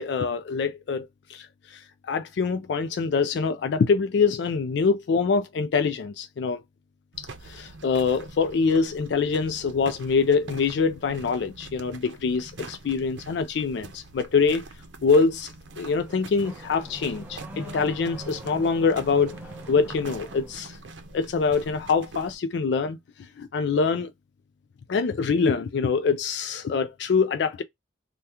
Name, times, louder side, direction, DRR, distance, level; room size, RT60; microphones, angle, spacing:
voice 1, 0.0-6.6 7.2-14.6 15.0-15.5 15.8-19.4 19.7-20.8 21.1-24.1 24.9-27.6, left 5 dB, 65° left, 0.3 m, -25 dB
sound 1, 7.1-22.3, right 3 dB, 75° right, 0.6 m, -43 dB
Car / Accelerating revving vroom, 15.7-20.7, right 1 dB, 10° right, 0.5 m, -45 dB
2.8 x 2.2 x 3.4 m
head